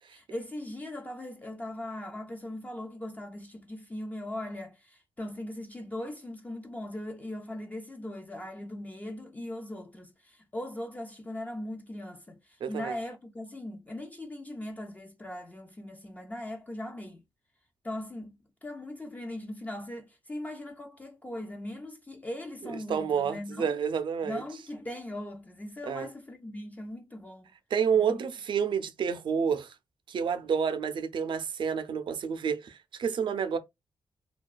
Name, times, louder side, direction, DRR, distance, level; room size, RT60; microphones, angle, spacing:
voice 1, 0.1-12.4 12.7-17.2 17.8-18.4 18.6-23.8 24.2-27.5 27.9-28.2, left 1 dB, 15° left, 0.4 m, -39 dB
voice 2, 12.6-12.9 22.9-24.4 25.8-26.1 27.7-29.7 30.1-33.6, right 7 dB, 65° right, 0.4 m, -29 dB
2.3 x 2.2 x 2.3 m
cardioid pair, 105°, 9 cm